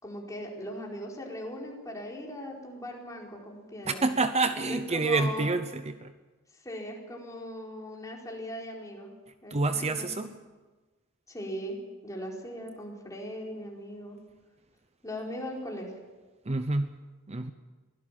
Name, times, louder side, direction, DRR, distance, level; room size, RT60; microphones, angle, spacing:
voice 1, 0.0-4.1 4.7-5.5 6.6-10.1 11.3-14.2 15.0-15.9, equal, 15° left, -1 dB, 4.5 m, -39 dB
voice 2, 3.9-6.1 9.5-10.4 16.4-17.0 17.3-17.5, right 3 dB, 30° right, 10 dB, 0.8 m, -28 dB
23.5 x 16.5 x 7.6 m, 1.3 s
head